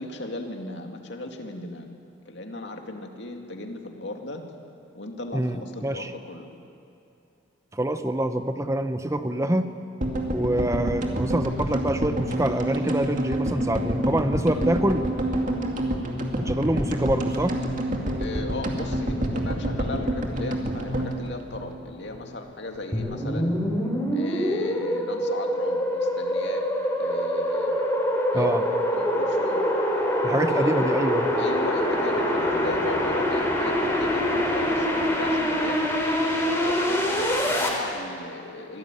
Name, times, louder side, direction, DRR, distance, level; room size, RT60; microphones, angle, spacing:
voice 1, 0.0-1.9 2.3-4.4 4.9-6.5 18.2-23.5 24.1-26.7 27.0-27.9 28.3-28.6 28.9-29.7 30.5-30.8 31.4-35.9 36.4-38.8, left 2 dB, 60° left, 3 dB, 2.4 m, -37 dB
voice 2, 7.7-9.7 10.3-15.1 16.4-17.6 28.3-28.6 30.2-31.3, right 1 dB, 15° right, 9 dB, 0.8 m, -25 dB
sound 1, 10.0-22.2 22.5-22.6 22.7-22.8, right 1 dB, 40° right, 2.6 m, -28 dB
sound 2, 22.9-37.7, equal, 15° left, 3.9 m, -25 dB
24.5 x 18.0 x 9.1 m, 2.7 s
head